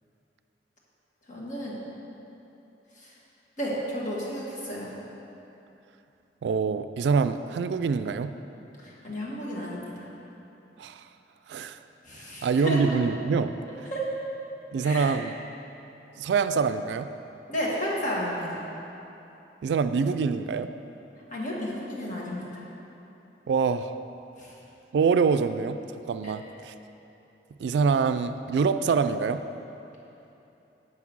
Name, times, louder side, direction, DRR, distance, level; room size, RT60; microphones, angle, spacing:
voice 1, 1.3-1.8 3.0-3.1 3.6-4.9 8.8-10.1 12.0-13.0 13.9-14.1 14.8-15.1 17.5-18.6 21.3-22.6 24.4-24.5 26.2-26.3, equal, 45° left, -5 dB, 1.7 m, -32 dB
voice 2, 6.4-8.3 10.8-11.0 11.5-11.8 12.4-13.6 14.7-15.3 16.2-17.1 19.6-20.7 23.5-23.9 24.9-25.8 26.1-26.7 27.6-29.4, right 5 dB, 70° right, 11 dB, 0.3 m, -25 dB
7.6 x 5.9 x 6.1 m, 2.9 s
head